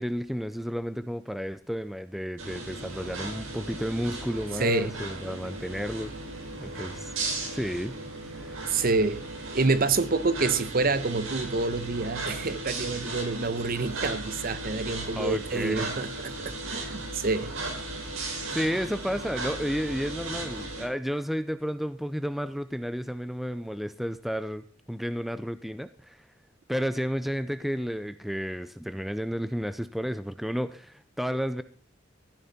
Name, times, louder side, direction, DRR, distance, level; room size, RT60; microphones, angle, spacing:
voice 1, 0.0-6.1 6.5-7.1 7.5-7.9 8.3-8.8 15.2-15.9 18.5-26.3 26.7-31.6, equal, ahead, 0.5 m, -32 dB
sound 1, 2.4-20.8, right 2 dB, 90° right, 4.7 m, -36 dB
voice 2, 4.6-4.9 8.7-9.2 9.5-17.5, right 3 dB, 45° right, 1.0 m, -27 dB
14.5 x 10.5 x 4.3 m
head